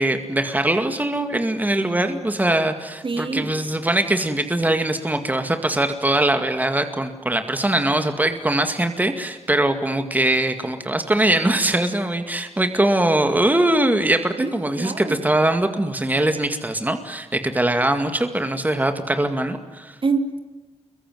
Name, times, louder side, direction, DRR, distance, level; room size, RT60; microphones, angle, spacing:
voice 1, 0.0-20.0, right 1 dB, 15° right, 7 dB, 2.1 m, -22 dB
voice 2, 3.0-3.5 14.4-14.5 14.8-15.2 20.0-20.4, right 4 dB, 50° right, 7 dB, 3.1 m, -25 dB
28.0 x 23.0 x 9.4 m, 1.2 s
wide cardioid pair, 85°, 11 cm